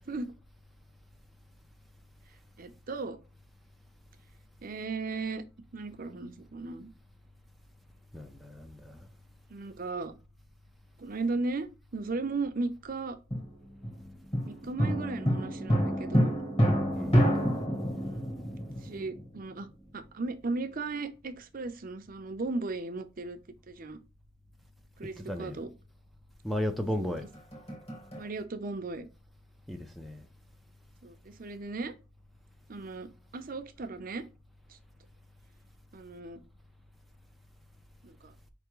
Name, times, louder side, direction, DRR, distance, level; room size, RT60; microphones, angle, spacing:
voice 1, 2.6-3.2 4.6-5.4 5.7-6.9 9.5-10.1 11.0-13.2 14.5-16.4 18.0-18.4 18.8-19.7 19.9-23.4 23.7-24.0 25.0-25.7 27.0-27.2 28.2-29.1 31.0-31.9 32.7-34.2 34.7-34.8 35.9-36.4 38.0-38.3, right 3 dB, 45° right, 0.6 m, -36 dB
voice 2, 8.1-9.1 16.9-17.2 25.3-25.6 26.4-27.3 29.7-30.2, left 1 dB, ahead, 0.4 m, -34 dB
sound 1, 13.3-19.7 27.2-28.3, equal, 30° left, 1.5 m, -28 dB
4.7 x 3.4 x 3.0 m
head